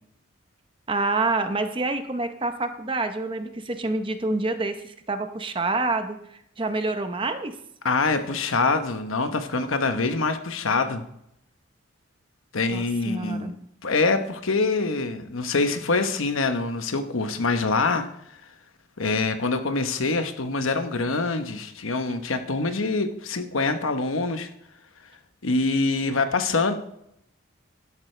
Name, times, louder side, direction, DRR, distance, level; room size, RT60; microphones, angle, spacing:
voice 1, 0.9-7.6 12.7-13.6, right 3 dB, 25° right, 8 dB, 0.7 m, -27 dB
voice 2, 7.8-11.0 12.5-13.5 13.8-18.1 19.0-24.5 25.4-26.8, left 3 dB, 80° left, 8 dB, 1.0 m, -25 dB
12.0 x 11.5 x 3.3 m, 0.76 s
head